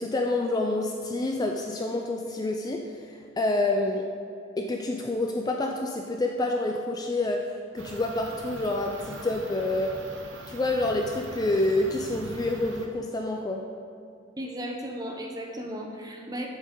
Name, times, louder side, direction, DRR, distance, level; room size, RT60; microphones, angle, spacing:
voice 1, 0.0-2.8 3.1-4.1 4.6-7.4 7.7-9.9 10.5-13.6, left 2 dB, 20° left, 2 dB, 0.3 m, -28 dB
sound 1, 7.8-12.9, right 2 dB, 60° right, 0.7 m, -42 dB
voice 2, 14.4-16.5, equal, 20° right, 0 dB, 0.8 m, -35 dB
7.4 x 7.3 x 3.8 m, 2.4 s
head